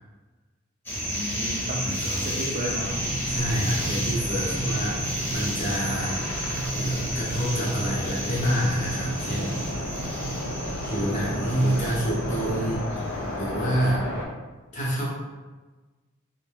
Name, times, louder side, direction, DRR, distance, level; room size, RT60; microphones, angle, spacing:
sound 1, 0.9-13.2, equal, 10° left, 0.9 m, -32 dB
voice 1, 1.1-3.0 3.9-4.0, equal, 40° right, -3 dB, 0.4 m, -33 dB
voice 2, 1.8-2.3 3.3-6.2 6.7-9.9 10.8-14.1 14.7-15.1, equal, 40° left, -5 dB, 0.8 m, -28 dB
sound 2, 2.6-14.3, left 1 dB, 60° left, 0.5 m, -35 dB
sound 3, 2.8-12.8, right 2 dB, 85° right, 0.6 m, -35 dB
2.6 x 2.0 x 3.4 m, 1.2 s
head